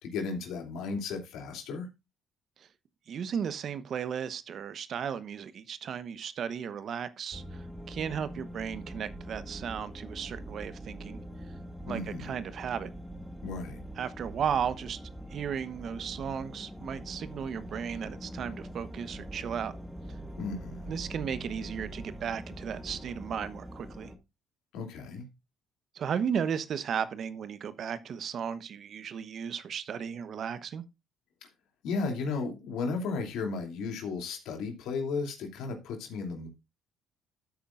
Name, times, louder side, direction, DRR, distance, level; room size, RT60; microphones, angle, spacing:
voice 1, 0.0-1.9 11.9-12.3 13.4-13.8 20.4-20.9 24.7-25.3 31.8-36.5, left 4 dB, 75° left, 2.8 m, -34 dB
voice 2, 3.1-7.4 7.9-11.2 11.9-12.9 14.0-15.0 15.3-19.7 20.1-20.2 20.9-24.1 25.9-30.8, right 7 dB, 55° right, 1.0 m, -35 dB
sound 1, 7.3-24.2, right 1 dB, ahead, 1.6 m, -43 dB
13.0 x 8.6 x 2.5 m
supercardioid pair, 65°, 0 cm